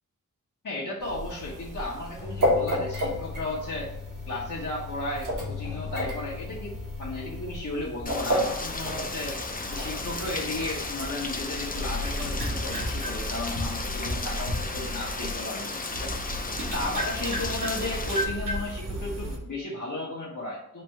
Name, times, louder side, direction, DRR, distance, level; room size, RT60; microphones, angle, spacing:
voice 1, 0.6-3.9 4.3-9.4 9.7-16.2 16.5-20.8, left 2 dB, 70° left, -4 dB, 1.1 m, -34 dB
sound 1, 1.0-15.4 15.9-19.4, left 1 dB, 75° right, 1.5 m, -32 dB
Rain, 8.1-18.2, left 3 dB, 25° left, 0.5 m, -35 dB
4.4 x 2.7 x 4.4 m, 0.80 s
wide cardioid pair, 80°, 32 cm